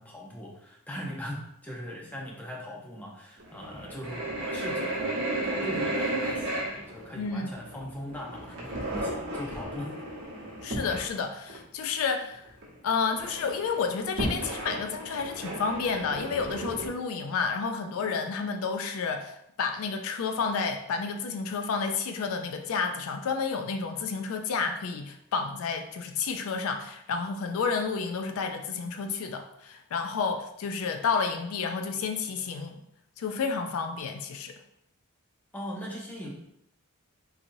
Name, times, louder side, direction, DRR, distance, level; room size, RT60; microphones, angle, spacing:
voice 1, 0.0-9.9 35.5-36.3, equal, 10° left, -3 dB, 0.6 m, -40 dB
sound 1, 3.4-11.1 11.5-11.6 12.0-12.1 12.3-12.8 13.1-16.9, right 1 dB, 55° right, 1.1 m, -34 dB
voice 2, 7.1-7.6 10.6-12.5 12.8-32.8 33.2-34.5, left 5 dB, 75° left, 6 dB, 0.4 m, -30 dB
3.8 x 3.0 x 2.6 m, 0.76 s
head